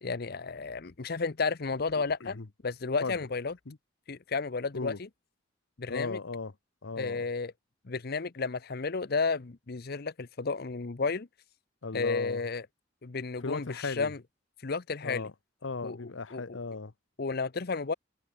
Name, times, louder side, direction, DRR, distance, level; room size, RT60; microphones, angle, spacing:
voice 1, 0.0-2.4 2.6-3.5 4.1-4.9 5.8-6.2 7.0-7.5 7.9-11.3 11.9-12.6 13.0-14.2 14.6-15.2 15.8-16.0 16.3-16.6 17.2-17.9, left 4 dB, 55° left, 0.8 m, -32 dB
voice 2, 5.9-6.5 6.8-7.3 11.8-12.4 13.4-14.1 15.0-15.3 15.6-16.9, left 3 dB, 90° left, 1.0 m, -36 dB
head